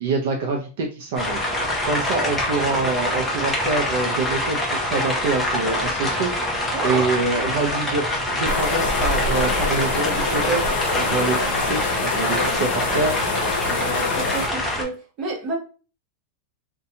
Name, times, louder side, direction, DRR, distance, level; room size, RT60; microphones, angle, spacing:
voice 1, 0.0-1.4 1.8-6.3 6.8-13.2, right 3 dB, 55° right, 1 dB, 0.5 m, -25 dB
sound 1, 1.2-14.8, left 1 dB, 5° left, 0.6 m, -25 dB
voice 2, 6.7-7.6 13.7-15.5, right 2 dB, 25° right, -1 dB, 0.8 m, -31 dB
sound 2, 8.5-14.5, left 4 dB, 60° left, 0.7 m, -25 dB
2.6 x 2.2 x 2.7 m, 0.36 s
supercardioid pair, 175°, 0 cm